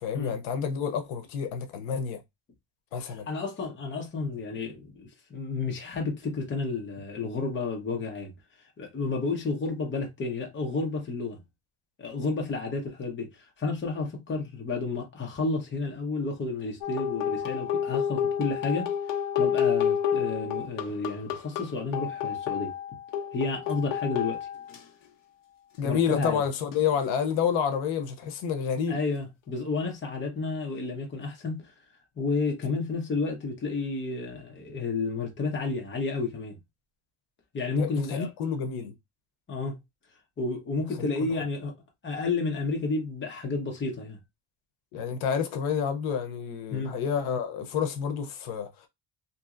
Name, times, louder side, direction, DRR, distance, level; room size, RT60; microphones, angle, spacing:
voice 1, 0.0-2.2 2.9-3.3 25.8-29.0 37.8-38.9 41.0-41.3 44.9-48.9, left 7 dB, 85° left, 0.8 m, -29 dB
voice 2, 3.3-8.3 8.8-11.4 12.0-18.9 19.4-22.7 23.3-24.4 25.8-26.4 28.9-31.7 32.2-36.6 37.5-38.3 39.5-39.8 40.4-41.7 42.0-44.2 46.7-46.9, left 3 dB, 25° left, 0.8 m, -31 dB
sound 1, 16.8-24.8 26.7-26.9, left 8 dB, 45° left, 0.5 m, -29 dB
2.9 x 2.7 x 2.4 m
cardioid pair, 165°, 46 cm